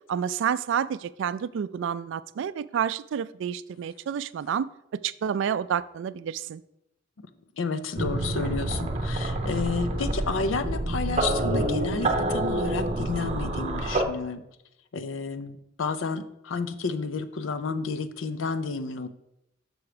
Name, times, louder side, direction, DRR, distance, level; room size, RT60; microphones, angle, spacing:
voice 1, 0.1-6.6, right 8 dB, 70° right, 0.3 m, -29 dB
voice 2, 7.6-14.4 14.9-19.1, left 4 dB, 75° left, 0.5 m, -31 dB
sound 1, 8.0-14.0, right 1 dB, 35° right, 0.8 m, -27 dB
6.3 x 5.8 x 4.9 m
head